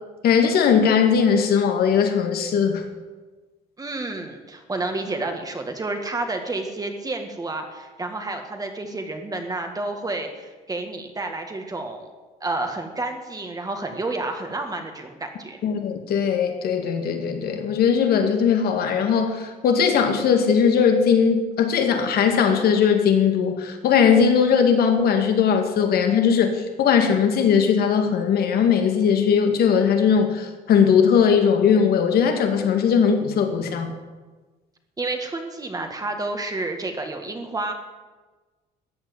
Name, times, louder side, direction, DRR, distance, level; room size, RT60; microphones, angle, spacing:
voice 1, 0.2-2.8 15.6-33.9, left 7 dB, 65° left, 5 dB, 2.4 m, -19 dB
voice 2, 3.8-12.1 12.4-15.6 35.0-37.7, right 2 dB, 20° right, 4 dB, 1.9 m, -30 dB
14.0 x 8.7 x 8.1 m, 1.3 s
cardioid pair, 110°, 17 cm